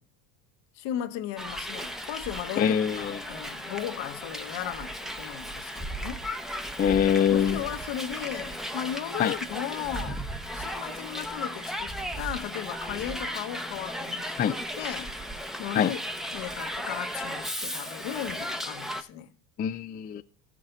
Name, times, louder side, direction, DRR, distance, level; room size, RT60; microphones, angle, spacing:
voice 1, 0.7-6.2 7.3-10.2 10.5-15.1 15.6-16.0 16.3-19.3, left 11 dB, 60° left, 1.2 m, -36 dB
Hiss, 1.4-19.0, equal, ahead, 0.8 m, -36 dB
voice 2, 2.6-3.2 6.8-7.6 9.2-9.3 14.4-14.5 15.7-15.9 19.6-20.2, left 8 dB, 20° left, 0.4 m, -24 dB
14.5 x 6.4 x 3.8 m
supercardioid pair, 95°, 48 cm